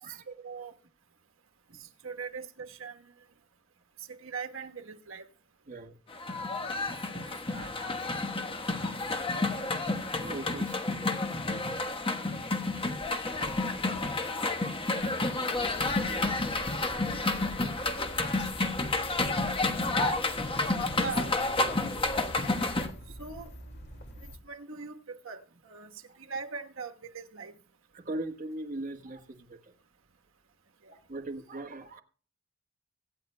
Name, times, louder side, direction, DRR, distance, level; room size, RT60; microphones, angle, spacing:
voice 1, 0.0-0.7 1.7-3.1 4.1-5.3 6.6-6.7 7.1-7.2 7.5-7.7 20.9-21.3 22.1-22.5 23.2-23.5 24.4-27.5 30.8-30.9, right 5 dB, 75° right, 1.2 m, -41 dB
sound 1, 6.1-22.9, left 2 dB, 25° left, 1.2 m, -30 dB
voice 2, 10.2-10.9 12.1-12.4 15.4-15.6 16.9-17.2 26.1-26.2 27.9-29.7 30.9-32.0, right 2 dB, 40° right, 1.3 m, -41 dB
sound 2, 15.5-24.4, equal, 55° left, 2.1 m, -45 dB
24.0 x 9.7 x 2.2 m
head